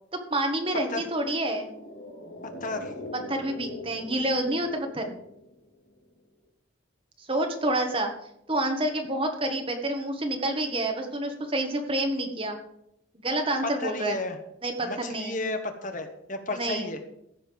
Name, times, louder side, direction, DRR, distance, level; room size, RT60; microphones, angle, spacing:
voice 1, 0.3-1.7 3.3-5.1 7.3-8.1 8.5-12.6 13.2-14.2 14.6-15.3 16.6-16.9, right 1 dB, 25° right, 4 dB, 1.5 m, -28 dB
sound 1, 1.4-5.9 6.2-6.3, left 2 dB, 85° left, 2.9 m, -42 dB
voice 2, 2.6-2.9 13.6-14.4 14.8-17.0, left 2 dB, 40° left, 6 dB, 1.2 m, -33 dB
15.0 x 5.6 x 7.0 m, 0.78 s
head